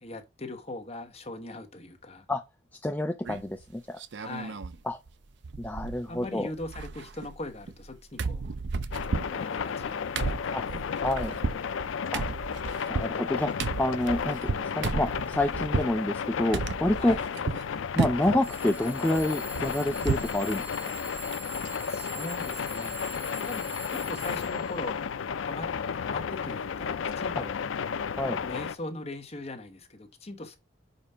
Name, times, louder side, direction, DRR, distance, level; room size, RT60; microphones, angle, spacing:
voice 1, 0.0-2.3 4.1-4.6 6.1-8.5 8.9-10.8 17.0-17.2 21.4-23.0 23.5-23.6 23.9-25.0 25.4-25.7 25.9-27.6 28.1-30.6, left 2 dB, 30° left, 1.3 m, -40 dB
voice 2, 2.8-4.0 4.9-5.0 5.6-6.5 10.5-10.6 11.0-11.3 12.1-12.2 12.9-13.5 13.8-17.2 18.0-20.7 27.4-27.5 28.2-28.4, left 1 dB, 10° left, 0.4 m, -28 dB
sound 1, 3.2-3.6 4.0-4.8 5.1-5.2 5.4-6.3 6.5-7.9 8.2-16.0 16.5-17.7 18.0-18.4 18.8-20.4 20.7-20.8 21.1-21.3, right 4 dB, 60° right, 0.5 m, -33 dB
sound 2, 8.9-28.8, left 6 dB, 80° left, 0.4 m, -33 dB
Alarm / Clock, 13.4-13.5 14.1-14.5 15.1-15.5 16.3-16.4 18.4-24.8, right 2 dB, 10° right, 1.1 m, -44 dB
5.3 x 4.9 x 5.6 m
head